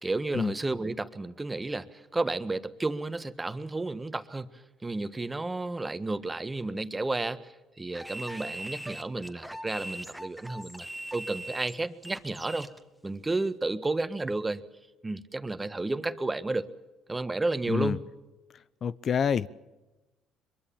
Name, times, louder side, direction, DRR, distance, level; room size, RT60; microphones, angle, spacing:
voice 1, 0.0-4.5 4.8-10.9 11.1-12.7 13.0-14.6 15.0-16.6 17.1-18.0, right 2 dB, 20° right, 11 dB, 1.5 m, -32 dB
sound 1, 7.9-12.8, right 1 dB, ahead, 1.8 m, -41 dB
voice 2, 17.7-18.0 18.8-19.5, left 7 dB, 50° left, 18 dB, 0.7 m, -27 dB
24.0 x 22.5 x 7.2 m, 1.1 s
supercardioid pair, 65°, 0 cm